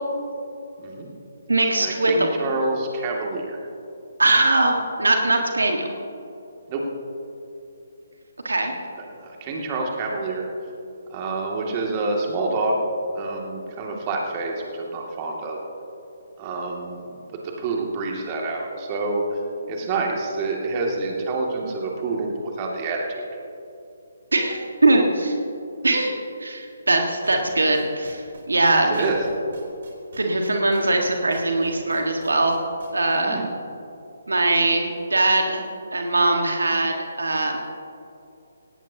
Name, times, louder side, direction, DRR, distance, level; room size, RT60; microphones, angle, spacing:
voice 1, 0.8-1.1 1.8-3.6 6.7-6.9 9.1-10.5 11.1-12.8 13.1-15.6 16.4-19.4 19.7-23.3 28.7-29.2 33.2-33.5, right 3 dB, 30° right, -1 dB, 2.4 m, -27 dB
voice 2, 1.5-2.3 4.2-5.9 8.4-8.7 24.3-25.4 25.8-29.0 30.2-32.6 32.9-33.4 34.3-35.6 35.9-37.6, right 2 dB, 75° right, 3 dB, 1.7 m, -21 dB
sound 1, 27.2-33.2, right 3 dB, 55° right, 3.7 m, -43 dB
18.0 x 18.0 x 2.9 m, 2.8 s
figure-of-eight pair, 140°, 0 cm